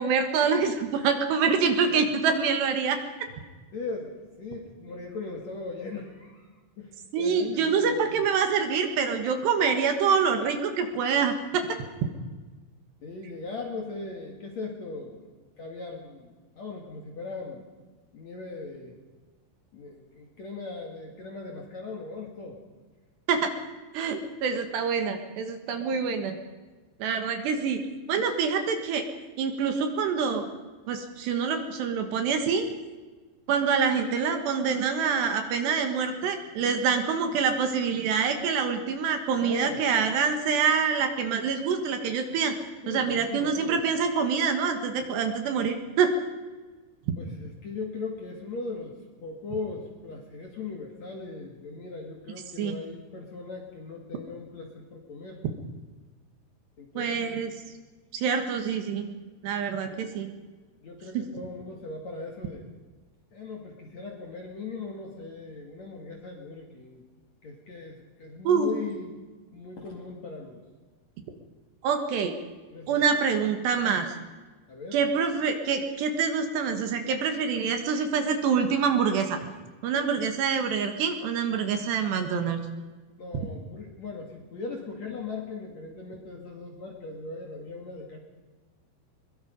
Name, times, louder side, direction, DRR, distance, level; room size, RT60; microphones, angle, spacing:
voice 1, 0.0-3.0 7.1-11.8 23.3-23.5 23.9-26.4 27.0-27.8 28.1-29.1 29.4-30.5 30.9-32.7 33.5-42.6 42.9-46.1 52.6-52.8 57.0-57.5 58.1-59.1 59.4-60.3 68.5-68.7 71.8-72.4 72.9-74.1 74.9-79.4 79.8-82.6 83.3-83.5, right 6 dB, 70° right, 6 dB, 3.4 m, -26 dB
voice 2, 3.7-8.2 13.0-15.2 15.6-17.6 18.1-19.0 19.7-22.6 39.4-39.8 42.8-43.8 47.2-49.0 49.2-55.4 56.8-57.4 60.8-62.7 63.3-67.0 67.4-69.1 69.5-70.6 72.7-73.0 74.7-75.0 83.2-88.2, left 3 dB, 45° left, 1 dB, 2.5 m, -39 dB
22.5 x 22.0 x 5.3 m, 1.3 s
omnidirectional pair, 5.6 m